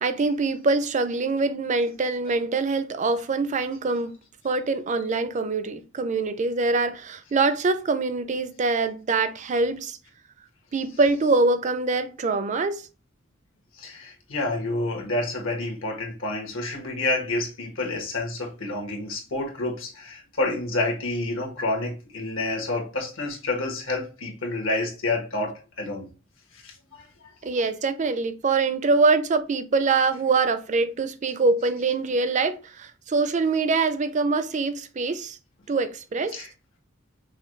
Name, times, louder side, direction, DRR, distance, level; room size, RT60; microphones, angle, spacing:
voice 1, 0.0-4.2 4.4-10.0 10.7-12.9 27.4-35.4 35.7-36.4, right 3 dB, 35° right, 0.4 m, -24 dB
voice 2, 13.7-26.1 26.5-27.1 36.3-36.5, left 2 dB, 75° left, 1.4 m, -29 dB
5.6 x 2.3 x 3.2 m
head